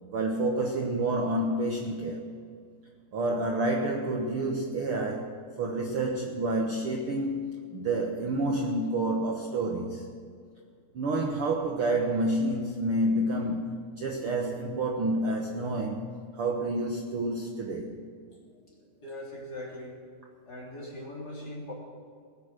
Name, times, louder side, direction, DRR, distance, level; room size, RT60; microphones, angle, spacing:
voice 1, 0.1-2.2 3.1-10.1 10.9-13.7 14.0-17.9, right 2 dB, 75° right, 1 dB, 1.2 m, -29 dB
voice 2, 18.3-19.9 20.4-21.7, left 1 dB, 25° left, -3 dB, 3.4 m, -41 dB
20.0 x 9.3 x 6.4 m, 2.2 s
omnidirectional pair, 4.4 m